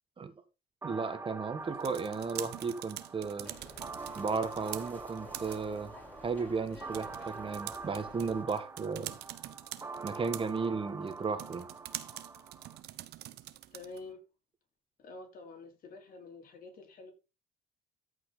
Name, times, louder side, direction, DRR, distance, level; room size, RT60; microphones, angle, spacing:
sound 1, 0.8-12.8, right 4 dB, 15° right, 0.8 m, -45 dB
voice 1, 0.8-3.5 4.2-5.9 6.2-9.1 10.0-11.7, right 5 dB, 30° right, 1.8 m, -34 dB
sound 2, 1.6-14.1, right 14 dB, 80° right, 1.1 m, -46 dB
sound 3, 3.4-8.4, left 1 dB, 10° left, 4.6 m, -50 dB
voice 2, 13.7-14.2 15.0-17.1, left 3 dB, 55° left, 4.3 m, -48 dB
14.0 x 5.9 x 4.0 m
cardioid pair, 110°, 17 cm